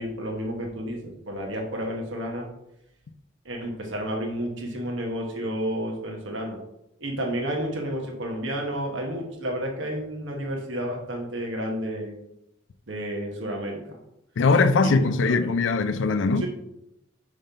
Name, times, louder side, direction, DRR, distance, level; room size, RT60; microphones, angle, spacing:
voice 1, 0.0-2.5 3.4-6.6 7.0-12.3 12.9-14.0 14.8-15.0 15.3-15.5 16.4-16.5, equal, 75° right, 1.0 m, -31 dB
voice 2, 14.4-16.5, left 3 dB, 75° left, 0.4 m, -21 dB
5.2 x 3.2 x 5.5 m
head